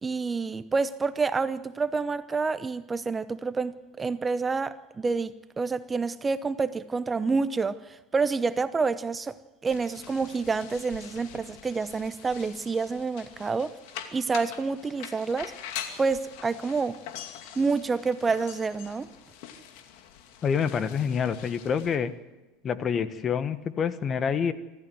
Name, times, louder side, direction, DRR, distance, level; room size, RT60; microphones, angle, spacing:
voice 1, 0.0-9.4 9.6-13.8 14.1-15.5 16.0-17.0 17.6-19.1, right 4 dB, 20° right, 0.8 m, -28 dB
sound 1, 9.7-22.0, left 9 dB, 70° left, 2.5 m, -44 dB
voice 2, 20.4-22.1 22.6-24.5, left 7 dB, 35° left, 1.4 m, -27 dB
25.5 x 13.5 x 7.9 m
hypercardioid pair, 95°, 0 cm